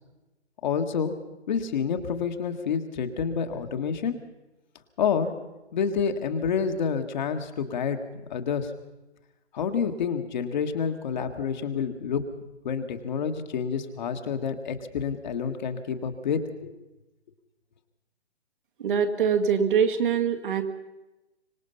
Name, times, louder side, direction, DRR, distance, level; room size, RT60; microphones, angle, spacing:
voice 1, 0.6-1.2 1.5-4.2 5.0-5.3 5.7-8.0 8.3-8.7 9.5-12.2 12.6-16.7, left 6 dB, 40° left, 6 dB, 1.7 m, -28 dB
voice 2, 18.8-20.6, right 7 dB, 50° right, 5 dB, 2.0 m, -23 dB
25.0 x 18.5 x 5.7 m, 1.0 s
figure-of-eight pair, 130°, 33 cm